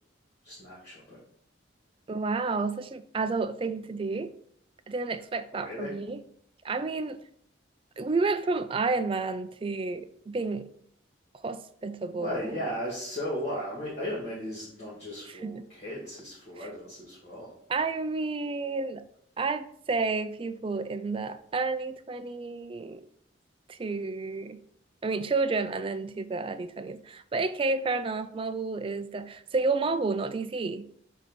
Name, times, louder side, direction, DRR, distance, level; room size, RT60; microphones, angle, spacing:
voice 1, 0.4-1.2 5.5-6.0 12.2-17.5, equal, 35° left, -7 dB, 2.0 m, -36 dB
voice 2, 2.1-4.3 4.9-6.2 6.6-7.2 8.0-10.7 11.3-12.7 15.3-15.6 16.6-16.7 17.7-19.0 19.4-23.0 23.7-24.6 25.0-30.9, right 3 dB, 25° right, 11 dB, 0.3 m, -30 dB
7.3 x 2.8 x 5.4 m, 0.67 s
head